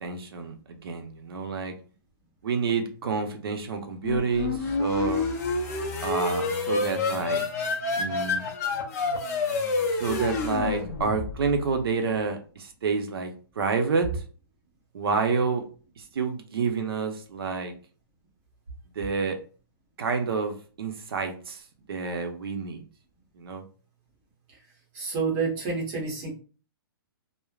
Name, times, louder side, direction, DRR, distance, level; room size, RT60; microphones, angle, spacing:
voice 1, 0.0-1.7 2.4-5.3 6.0-7.4 8.0-8.4 10.0-14.1 14.9-15.6 16.1-17.7 19.0-19.4 20.0-21.6 21.9-22.8 23.4-23.6, right 5 dB, 70° right, 5 dB, 0.6 m, -28 dB
sound 1, 4.0-11.7, left 3 dB, 40° left, 0.5 m, -28 dB
voice 2, 24.9-26.3, right 4 dB, 20° right, -3 dB, 0.8 m, -28 dB
3.2 x 2.0 x 2.3 m, 0.39 s
hypercardioid pair, 170°, 13 cm